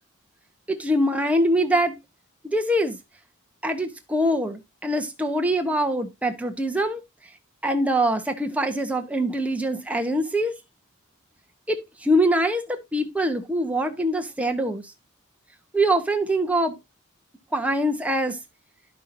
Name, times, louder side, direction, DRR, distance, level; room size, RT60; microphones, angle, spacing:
voice 1, 0.7-2.0 2.4-3.0 3.6-7.0 7.6-10.5 11.7-14.8 15.7-16.8 17.5-18.4, right 1 dB, 5° right, 0.9 m, -23 dB
11.5 x 5.5 x 2.6 m
head